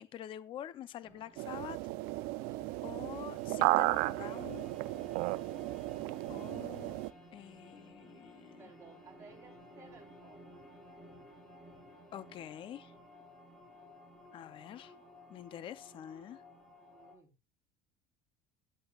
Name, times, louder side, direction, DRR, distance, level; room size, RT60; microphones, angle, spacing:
voice 1, 0.0-1.8 2.8-4.6 6.3-7.0 7.3-8.6 12.1-12.9 14.3-14.9 15.3-16.4, left 10 dB, 30° left, 0.6 m, -46 dB
sound 1, 1.0-17.1, equal, ahead, 7.1 m, -55 dB
sound 2, 1.4-7.1, right 19 dB, 70° right, 0.6 m, -34 dB
voice 2, 2.4-3.4 8.6-10.4 14.5-14.6 16.9-17.3, right 4 dB, 20° right, 3.7 m, -58 dB
16.0 x 9.8 x 2.4 m
cardioid pair, 160°, 16 cm